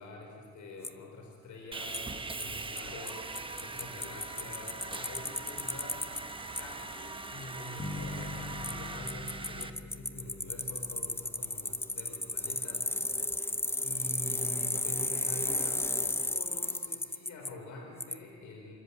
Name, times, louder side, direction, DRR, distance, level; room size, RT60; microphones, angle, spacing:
voice 1, 0.0-3.2 3.6-6.0 6.6-12.9 13.8-18.8, left 1 dB, 75° left, 1 dB, 4.5 m, -46 dB
Bicycle, 0.8-0.9 1.9-2.0 2.4-2.5 2.8-2.9 3.1-3.2 3.4-6.2 6.6-6.7 8.6-8.7 9.1-17.5 18.0-18.1, left 2 dB, 10° left, 0.8 m, -33 dB
Sawing, 1.7-9.7, right 3 dB, 15° right, 1.2 m, -41 dB
sound 1, 7.8-11.8, left 2 dB, 40° left, 4.0 m, -43 dB
28.0 x 13.5 x 8.5 m, 2.1 s
cardioid pair, 90°, 30 cm